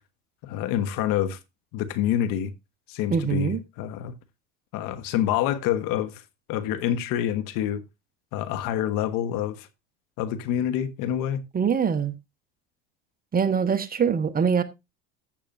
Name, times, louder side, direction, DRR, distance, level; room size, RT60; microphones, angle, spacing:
voice 1, 0.4-1.4 1.7-2.5 2.9-4.1 4.7-6.2 6.5-7.8 8.3-9.7 10.2-11.4, left 11 dB, 55° left, 1.3 m, -27 dB
voice 2, 3.1-3.6 11.5-12.1 13.3-14.6, right 6 dB, 25° right, 1.1 m, -23 dB
14.5 x 6.8 x 2.6 m
supercardioid pair, 110°, 38 cm